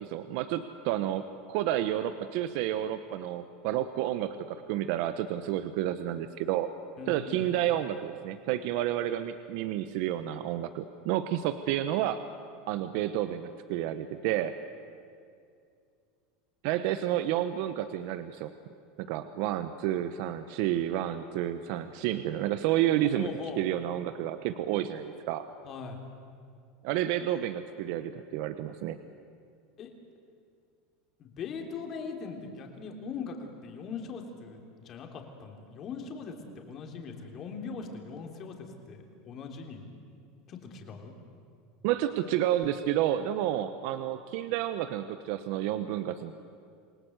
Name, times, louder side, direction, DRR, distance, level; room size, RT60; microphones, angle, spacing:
voice 1, 0.0-6.7 7.0-12.2 12.7-14.5 16.6-18.5 19.0-23.3 23.6-25.4 26.8-29.0 41.8-46.4, right 12 dB, 65° right, 11 dB, 0.9 m, -30 dB
voice 2, 7.0-7.4 23.1-23.6 25.7-26.0 29.8-29.9 31.2-36.3 36.7-38.5 38.9-39.9 40.5-41.1, left 5 dB, 40° left, 3 dB, 3.5 m, -40 dB
28.0 x 18.5 x 8.1 m, 2.3 s
supercardioid pair, 125°, 0 cm